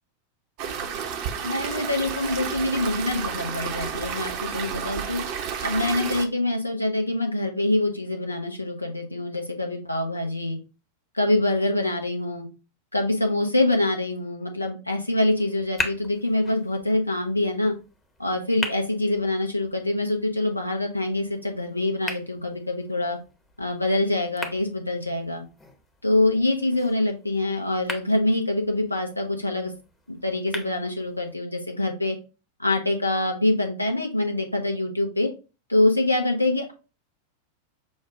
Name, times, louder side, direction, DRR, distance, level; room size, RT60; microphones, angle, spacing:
sound 1, 0.6-6.3, right 7 dB, 45° right, 0.8 m, -31 dB
voice 1, 1.4-5.2 5.6-10.6 11.1-12.5 12.9-17.7 18.2-23.2 23.6-25.4 26.0-29.7 30.1-32.2 32.6-35.3 35.7-36.7, left 2 dB, 85° left, 3 dB, 0.7 m, -25 dB
sound 2, 15.4-31.4, left 2 dB, 10° left, 0.9 m, -40 dB
6.3 x 2.3 x 3.6 m, 0.31 s
figure-of-eight pair, 90°, 0 cm